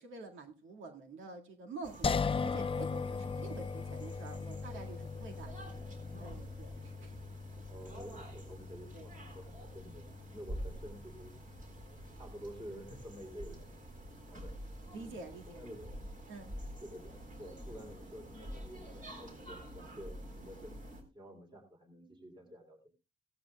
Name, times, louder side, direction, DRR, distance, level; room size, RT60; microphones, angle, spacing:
voice 1, 0.0-2.1 2.4-5.7 6.2-7.1 8.9-9.1 12.7-12.9 14.9-15.8 16.3-16.5, right 3 dB, 80° right, 4 dB, 2.0 m, -48 dB
sound 1, 1.8-21.0, right 1 dB, 40° right, 3.9 m, -48 dB
sound 2, 2.0-15.1, left 5 dB, 25° left, 0.6 m, -40 dB
voice 2, 7.7-11.5 12.2-13.7 14.0-14.5 14.9-15.2 15.5-15.9 16.8-20.8 21.1-22.9, equal, 25° right, 4 dB, 3.2 m, -50 dB
16.5 x 13.0 x 2.3 m, 0.28 s
cardioid pair, 90°, 20 cm